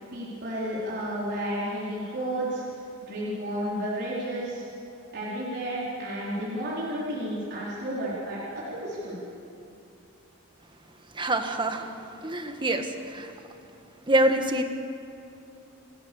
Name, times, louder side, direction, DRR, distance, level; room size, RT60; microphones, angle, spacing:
voice 1, 0.1-2.6 3.0-4.6 5.1-9.2, right 1 dB, 50° right, -7 dB, 4.6 m, -32 dB
voice 2, 11.1-11.9 12.2-13.3 14.1-14.6, right 1 dB, 25° right, 6 dB, 1.5 m, -25 dB
28.5 x 15.5 x 7.1 m, 2.7 s
head